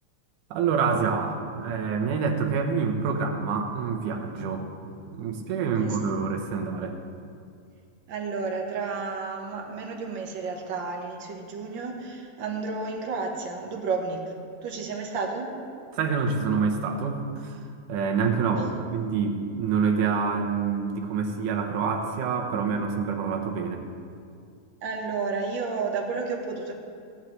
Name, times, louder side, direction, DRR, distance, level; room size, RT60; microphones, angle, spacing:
voice 1, 0.5-4.7 5.1-7.0 15.9-23.8, right 5 dB, 85° right, 3 dB, 2.5 m, -27 dB
voice 2, 8.1-14.3 14.6-15.5 18.6-18.8 24.8-26.7, right 4 dB, 50° right, 1 dB, 1.5 m, -31 dB
18.0 x 10.5 x 3.2 m, 2.3 s
omnidirectional pair, 3.5 m